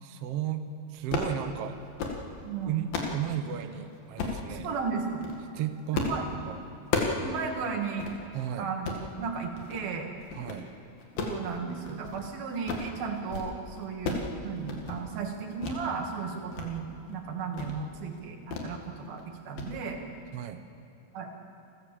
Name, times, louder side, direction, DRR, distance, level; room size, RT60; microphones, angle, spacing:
voice 1, 0.0-0.6 0.9-1.8 2.7-4.7 5.5-6.2 6.4-6.6 8.3-8.7 10.3-10.7 20.3-20.6, right 10 dB, 70° right, 8 dB, 1.5 m, -34 dB
sound 1, 1.0-1.4 1.8-2.2 2.6-3.2 4.2-4.4 5.1-5.4 5.9-6.2 6.5-7.3 7.6-7.7 8.0-8.2 8.7-9.0 9.6-9.9 10.2-10.6 11.0-12.2 12.5-12.9 13.2-13.5 13.8-14.3 14.6-15.0 15.6-15.8 16.2-16.7 17.0-17.1 17.5-17.8 18.5-18.7 19.0-19.2 19.6-19.7, left 4 dB, 85° left, 3.8 m, -33 dB
voice 2, 2.4-2.8 4.5-5.2 5.9-6.2 7.2-8.1 8.6-10.1 11.2-20.0 21.1-21.3, right 5 dB, 85° right, 2 dB, 3.9 m, -35 dB
29.0 x 13.5 x 7.5 m, 2.9 s
omnidirectional pair, 4.1 m